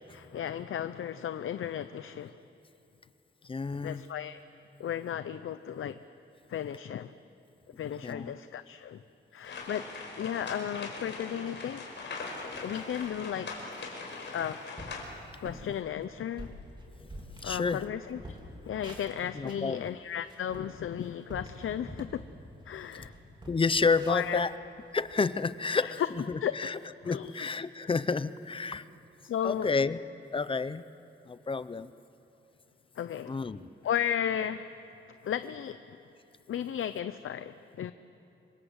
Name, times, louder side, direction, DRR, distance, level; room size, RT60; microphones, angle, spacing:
voice 1, 0.1-2.4 3.8-4.4 4.8-6.0 6.5-7.1 7.8-9.0 9.3-9.9 10.2-11.8 12.6-13.6 14.3-14.6 15.4-16.5 17.4-18.2 18.6-22.2 22.7-23.1 24.1-24.4 25.8-26.1 26.4-26.7 27.0-27.5 29.2-29.7 33.0-33.4 33.8-34.7 35.2-35.8 36.5-37.9, left 9 dB, 80° left, 12 dB, 0.7 m, -34 dB
voice 2, 3.4-4.0 8.0-8.3 17.0-17.1 17.4-17.8 19.4-19.9 23.5-24.5 24.9-26.8 27.0-28.9 29.4-30.0 30.3-30.8 31.3-31.9 33.3-33.7, left 4 dB, 25° left, 14 dB, 0.6 m, -30 dB
sound 1, 9.4-15.0, left 3 dB, 65° left, 4.9 m, -41 dB
sound 2, 12.5-13.3 13.7-13.9 14.4-14.5 14.8-15.1 15.4-15.7 16.2-17.9 18.1-19.7 20.1-22.3 22.6-22.7 23.0-25.1, equal, 25° right, 3.7 m, -46 dB
28.0 x 25.5 x 8.1 m, 2.9 s
wide cardioid pair, 165°, 21 cm